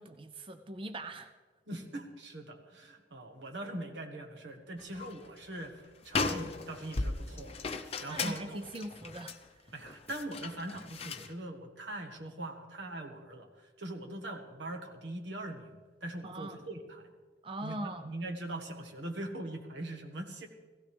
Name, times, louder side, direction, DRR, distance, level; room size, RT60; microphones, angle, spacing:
voice 1, 0.0-1.3 8.1-9.4 9.6-9.7 16.2-16.6 17.4-18.1, right 1 dB, 30° right, 8 dB, 0.5 m, -41 dB
voice 2, 1.7-7.5 8.0-8.7 9.7-17.1 17.6-20.5, right 1 dB, 85° right, 4 dB, 1.5 m, -42 dB
sound 1, 4.8-5.3 5.6-5.7 6.0-11.3, left 3 dB, 35° left, 0.8 m, -37 dB
16.5 x 16.5 x 3.4 m, 1.4 s
head